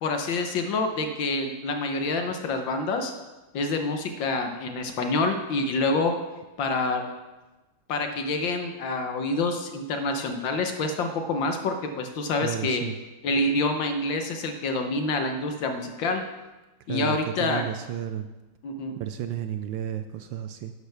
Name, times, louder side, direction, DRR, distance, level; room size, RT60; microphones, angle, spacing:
voice 1, 0.0-3.1 3.5-6.1 6.6-7.1 7.9-12.8 13.2-16.2 16.9-17.6 18.6-18.9, left 3 dB, 65° left, 5 dB, 1.6 m, -27 dB
voice 2, 12.4-13.0 16.9-18.3 18.9-20.7, right 10 dB, 75° right, 9 dB, 1.2 m, -32 dB
11.5 x 11.0 x 3.5 m, 1.1 s
omnidirectional pair, 2.3 m